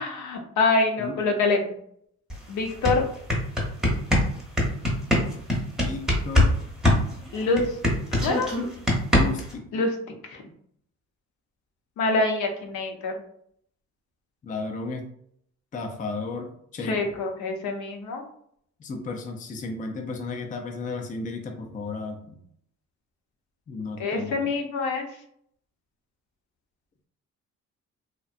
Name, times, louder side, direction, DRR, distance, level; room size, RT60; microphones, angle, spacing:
voice 1, 0.0-1.7 2.5-3.0 7.3-7.6 8.2-8.7 9.7-9.9 10.3-10.4 12.0-13.1 16.8-18.2 24.0-25.1, left 3 dB, 75° left, 3 dB, 0.6 m, -25 dB
sound 1, 2.3-2.4 2.7-6.5 6.8-9.5, left 1 dB, ahead, 0.8 m, -22 dB
voice 2, 5.8-6.6 9.2-9.7 14.4-15.1 15.7-17.2 18.8-22.4 23.7-24.5, left 3 dB, 25° left, 3 dB, 0.4 m, -34 dB
2.7 x 2.1 x 2.4 m, 0.67 s
cardioid pair, 90°, 30 cm